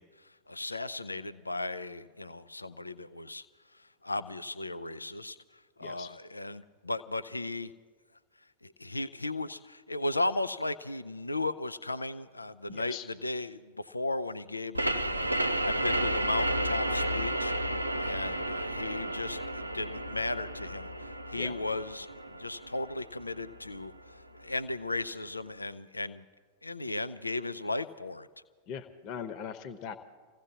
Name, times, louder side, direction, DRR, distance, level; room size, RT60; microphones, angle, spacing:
voice 1, 0.0-3.5 3.7-5.4 5.8-7.7 8.6-15.3 15.6-26.2 26.6-28.3, left 2 dB, 80° left, 14 dB, 0.4 m, -36 dB
voice 2, 12.7-13.0 21.4-21.5 28.7-30.0, left 8 dB, 40° left, 10 dB, 1.0 m, -40 dB
sound 1, 14.7-24.1, right 1 dB, 85° right, 0.6 m, -32 dB
29.0 x 16.5 x 2.8 m, 1.5 s
figure-of-eight pair, 90°, 0 cm